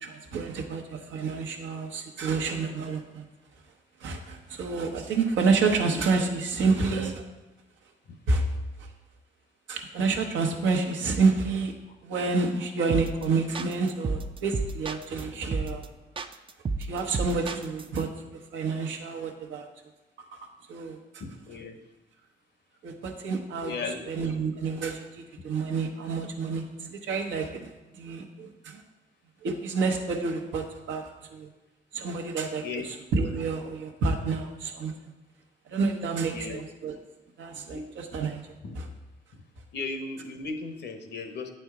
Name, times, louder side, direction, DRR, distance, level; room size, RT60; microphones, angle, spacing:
voice 1, 0.0-3.2 4.0-7.2 8.3-8.5 8.8-8.9 9.7-11.7 12.0-15.9 16.8-18.1 18.5-19.7 20.2-20.4 20.7-21.2 22.8-23.7 24.1-28.8 29.4-31.5 31.9-35.1 35.7-37.0 37.4-38.9, right 4 dB, 85° right, 3 dB, 1.0 m, -29 dB
sound 1, 12.9-13.2 13.5-15.2 15.5-15.9 16.2-18.0, right 3 dB, 30° right, 0.4 m, -31 dB
voice 2, 21.2-21.8 23.6-24.1 32.6-32.9 36.3-36.6 37.7-37.8 38.6-38.8 39.7-41.5, left 4 dB, 65° left, 6 dB, 0.9 m, -36 dB
8.1 x 4.4 x 4.7 m, 1.1 s
cardioid pair, 80°, 19 cm